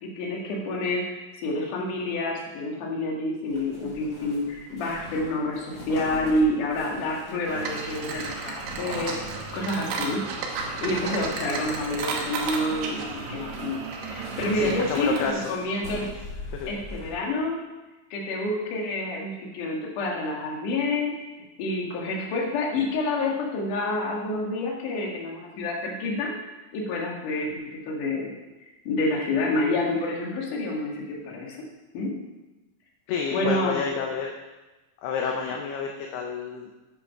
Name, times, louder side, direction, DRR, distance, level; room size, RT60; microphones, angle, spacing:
voice 1, 0.0-9.1 9.5-10.2 10.8-13.8 14.1-16.1 16.7-17.6 18.1-21.2 21.6-26.3 26.7-28.3 28.8-31.6 31.9-32.1 33.3-33.8, left 2 dB, 55° left, -1 dB, 2.7 m, -28 dB
sound 1, 3.5-17.1, left 1 dB, 15° left, 4.2 m, -41 dB
sound 2, 7.5-15.3, right 4 dB, 85° right, 3.8 m, -33 dB
voice 2, 14.5-15.4 16.5-16.7 33.1-34.3 35.0-36.7, left 6 dB, 75° left, 1 dB, 2.5 m, -29 dB
9.2 x 9.0 x 5.8 m, 1.1 s
omnidirectional pair, 5.5 m